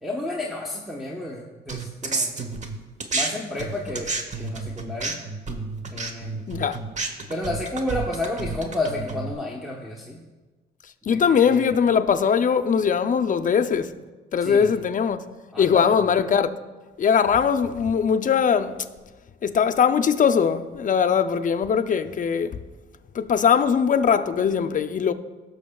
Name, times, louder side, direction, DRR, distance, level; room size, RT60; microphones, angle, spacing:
voice 1, 0.0-2.4 3.1-4.1 4.4-5.2 5.9-6.4 7.3-10.2 11.1-11.8 14.4-14.7 15.5-16.0, left 1 dB, ahead, 1.1 m, -31 dB
sound 1, 1.7-3.3 3.6-9.3, right 3 dB, 35° right, 1.0 m, -30 dB
voice 2, 6.5-6.8 11.1-13.9 14.3-15.3 15.6-16.5 17.0-18.8 19.4-22.6 23.1-25.1, left 7 dB, 40° left, 0.6 m, -21 dB
18.5 x 6.5 x 2.3 m
cardioid pair, 90°, 20 cm